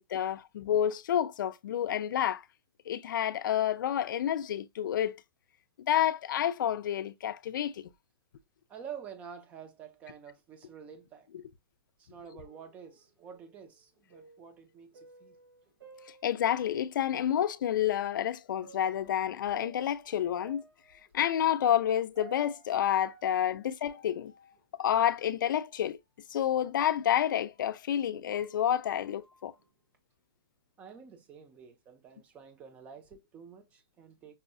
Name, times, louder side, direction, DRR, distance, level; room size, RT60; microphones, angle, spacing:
voice 1, 0.0-2.4 2.9-5.2 5.8-7.8 16.2-20.6 21.1-24.3 24.8-26.0 26.3-29.5, left 10 dB, 55° left, 0.5 m, -29 dB
voice 2, 8.7-11.3 12.0-15.4 30.8-34.4, right 7 dB, 10° right, 0.3 m, -49 dB
sound 1, 12.4-17.1 17.5-17.6 18.6-27.7 28.1-29.9, right 5 dB, 60° right, 1.4 m, -57 dB
5.4 x 2.0 x 2.6 m
hypercardioid pair, 165°, 12 cm